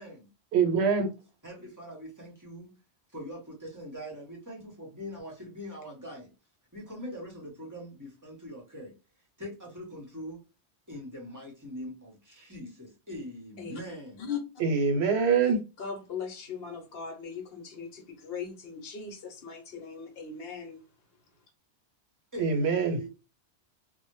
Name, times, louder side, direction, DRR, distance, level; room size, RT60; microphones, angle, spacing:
voice 1, 0.5-1.1 14.6-15.6 22.4-23.0, right 5 dB, 75° right, 0.9 m, -24 dB
voice 2, 1.4-2.7 3.1-6.3 6.7-8.9 9.4-10.4 10.9-14.3 22.3-23.1, equal, 20° right, 0.6 m, -42 dB
voice 3, 15.4-20.8, left 6 dB, 65° left, 0.9 m, -39 dB
2.1 x 2.0 x 2.9 m
omnidirectional pair, 1.1 m